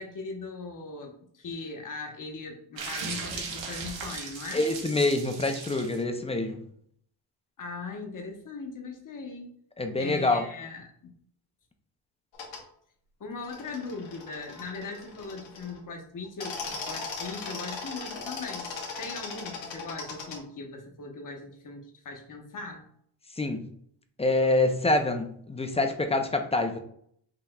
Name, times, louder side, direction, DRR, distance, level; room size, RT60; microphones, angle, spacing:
voice 1, 0.0-4.6 7.6-9.5 10.0-11.1 13.2-18.7 19.0-22.8, left 3 dB, 45° left, 4 dB, 0.9 m, -39 dB
sound 1, 2.8-6.0, right 5 dB, 75° right, 1.1 m, -37 dB
voice 2, 4.5-6.6 9.8-10.4 23.4-23.7 24.2-26.8, left 2 dB, 15° left, 6 dB, 0.3 m, -26 dB
sound 2, 12.3-12.6 13.4-15.8 16.2-20.4, left 4 dB, 85° left, 1.2 m, -38 dB
5.6 x 3.0 x 2.2 m, 0.65 s
wide cardioid pair, 125°, 45 cm